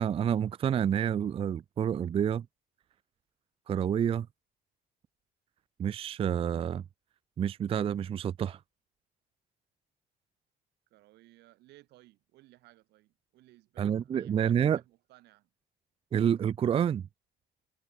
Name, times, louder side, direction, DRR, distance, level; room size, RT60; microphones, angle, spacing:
voice 1, 0.0-2.5 3.7-4.3 5.8-6.8 7.4-8.6 13.8-14.8 16.1-17.1, right 9 dB, 35° right, 0.4 m, -28 dB
voice 2, 10.9-15.5, right 17 dB, 80° right, 2.2 m, -59 dB
cardioid pair, 110°, 17 cm